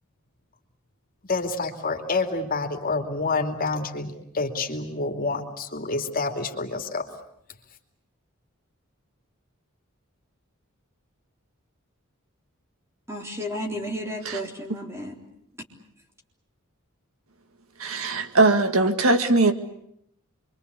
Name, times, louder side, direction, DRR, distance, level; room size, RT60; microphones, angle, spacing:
voice 1, 1.3-7.1, left 3 dB, 40° left, 3 dB, 2.8 m, -28 dB
voice 2, 13.1-15.2, equal, 15° right, 2 dB, 3.8 m, -33 dB
voice 3, 17.8-19.5, right 2 dB, 80° right, 8 dB, 1.9 m, -20 dB
27.0 x 24.0 x 8.3 m, 0.74 s
head